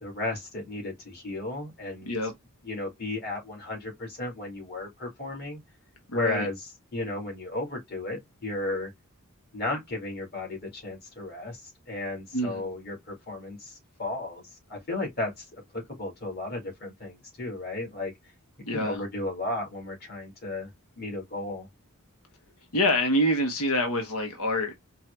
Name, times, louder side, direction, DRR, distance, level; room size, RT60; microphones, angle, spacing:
voice 1, 0.0-2.1 2.6-5.6 6.1-6.6 6.9-8.9 9.5-14.4 14.7-18.1 18.7-21.7, left 2 dB, 45° left, 2.4 m, -34 dB
voice 2, 6.1-6.5 12.3-12.7 18.7-19.0 22.7-24.7, left 1 dB, 85° left, 1.0 m, -26 dB
4.5 x 2.4 x 3.2 m
head